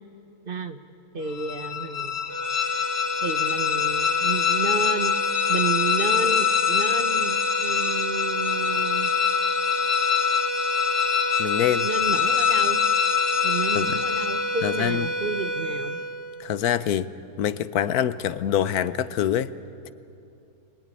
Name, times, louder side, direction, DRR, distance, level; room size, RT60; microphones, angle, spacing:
voice 1, 0.5-0.8 1.1-2.2 3.2-9.1 11.8-12.8 13.4-16.0, right 4 dB, 40° right, 1.1 m, -31 dB
sound 1, 1.3-14.7, left 9 dB, 60° left, 1.9 m, -25 dB
sound 2, 2.3-16.8, right 1 dB, 15° left, 1.1 m, -30 dB
voice 2, 11.4-11.9 13.7-14.0 14.6-15.1 16.4-17.1 17.4-19.5, left 10 dB, 80° left, 1.3 m, -25 dB
25.5 x 20.0 x 9.8 m
omnidirectional pair, 1.6 m